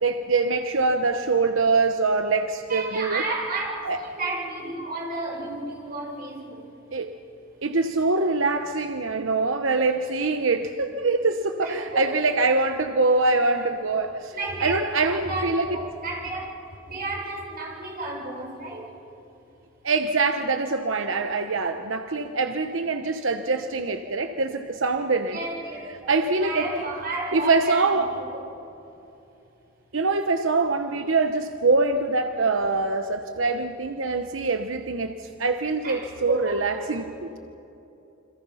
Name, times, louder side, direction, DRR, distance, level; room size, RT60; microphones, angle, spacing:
voice 1, 0.0-3.2 3.9-4.0 6.9-7.1 7.6-14.4 14.6-15.6 19.8-25.4 26.1-26.6 27.3-28.1 29.9-37.1, right 3 dB, 90° right, 7 dB, 1.0 m, -24 dB
voice 2, 2.7-6.6 11.6-12.2 14.3-16.4 16.9-18.9 25.3-28.4 35.8-37.0, right 2 dB, 50° right, -2 dB, 7.0 m, -32 dB
28.5 x 26.5 x 5.7 m, 2.9 s
head